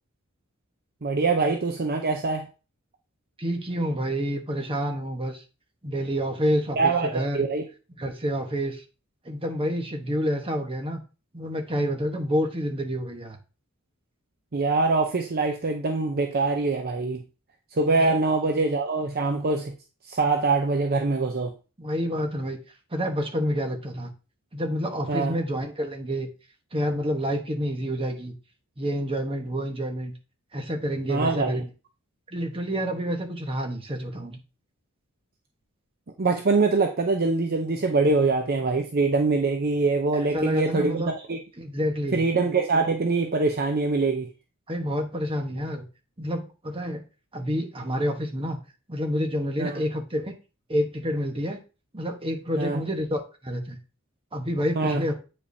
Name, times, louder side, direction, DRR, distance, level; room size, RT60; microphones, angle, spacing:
voice 1, 1.0-2.5 6.8-7.6 14.5-17.2 17.7-19.7 20.1-21.5 25.1-25.3 31.1-31.6 36.2-41.0 41.3-41.4 42.1-44.3 49.6-49.8 52.6-52.8 54.8-55.0, right 3 dB, 45° right, 0.7 m, -24 dB
voice 2, 3.4-5.4 5.8-7.4 8.0-8.8 9.2-11.0 11.3-13.4 18.0-18.1 21.8-22.6 22.9-24.1 24.5-26.3 26.7-28.3 28.8-30.1 30.5-31.7 32.3-34.4 40.1-41.1 41.6-42.2 44.7-45.8 46.2-47.0 47.3-48.6 48.9-50.3 50.7-51.6 51.9-53.8 54.3-55.1, equal, 25° right, 1.2 m, -28 dB
8.5 x 5.2 x 2.7 m
head